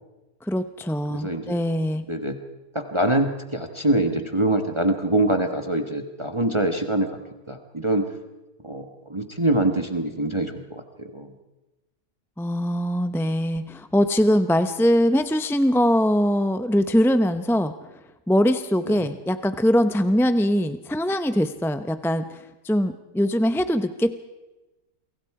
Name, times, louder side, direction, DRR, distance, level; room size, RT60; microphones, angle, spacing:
voice 1, 0.4-2.0 12.4-17.7 18.3-24.1, equal, 5° left, 10 dB, 0.4 m, -22 dB
voice 2, 1.1-1.6 2.1-2.4 2.7-7.1 7.5-8.1 8.6-11.3 18.9-19.1, right 1 dB, 20° right, 6 dB, 1.4 m, -24 dB
29.0 x 23.0 x 4.9 m, 1.1 s
omnidirectional pair, 1.6 m